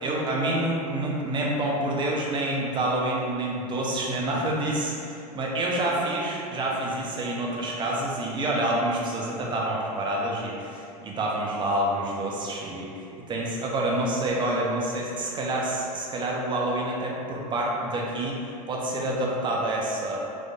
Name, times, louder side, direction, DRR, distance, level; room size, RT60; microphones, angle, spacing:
voice 1, 0.0-20.2, right 1 dB, 25° right, -2 dB, 0.6 m, -28 dB
3.8 x 2.5 x 2.8 m, 2.6 s
figure-of-eight pair, 80°, 21 cm